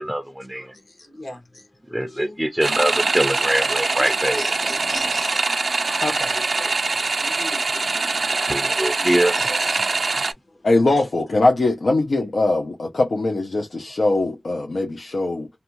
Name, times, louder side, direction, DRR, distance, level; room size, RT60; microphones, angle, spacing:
voice 1, 0.0-0.7 1.9-4.5 8.5-9.3, right 1 dB, 5° right, 0.4 m, -23 dB
voice 2, 0.5-2.5 2.9-3.0 4.0-6.9 7.2-7.9 8.4-10.3, left 2 dB, 65° left, 1.1 m, -37 dB
sound 1, 2.6-10.3, right 3 dB, 75° right, 0.3 m, -23 dB
voice 3, 10.6-15.5, left 2 dB, 90° left, 0.5 m, -21 dB
2.6 x 2.2 x 2.9 m
wide cardioid pair, 80°, 0 cm